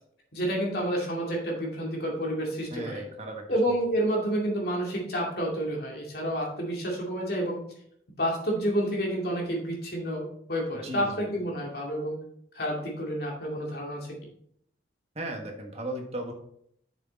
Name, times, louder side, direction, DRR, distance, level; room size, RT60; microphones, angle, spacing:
voice 1, 0.3-3.0 3.5-7.6 8.2-10.2 10.5-12.2 12.5-14.2, equal, 55° left, -1 dB, 2.3 m, -29 dB
voice 2, 2.7-3.7 10.7-11.2 15.1-16.3, right 1 dB, 35° right, 2 dB, 1.5 m, -37 dB
7.7 x 6.4 x 4.1 m, 0.69 s
head